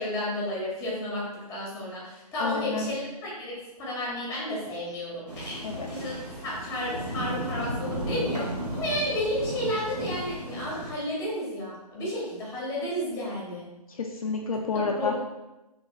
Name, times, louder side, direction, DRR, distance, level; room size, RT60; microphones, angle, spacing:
voice 1, 0.0-5.6 5.9-6.2 6.4-13.6 14.9-15.2, left 1 dB, 15° left, -5 dB, 1.0 m, -32 dB
voice 2, 2.4-2.9 5.6-5.9 13.9-15.1, left 4 dB, 60° left, 1 dB, 0.4 m, -29 dB
sound 1, 5.3-10.9, right 1 dB, 80° right, 1.2 m, -34 dB
3.1 x 2.9 x 3.0 m, 0.99 s
figure-of-eight pair, 135°, 20 cm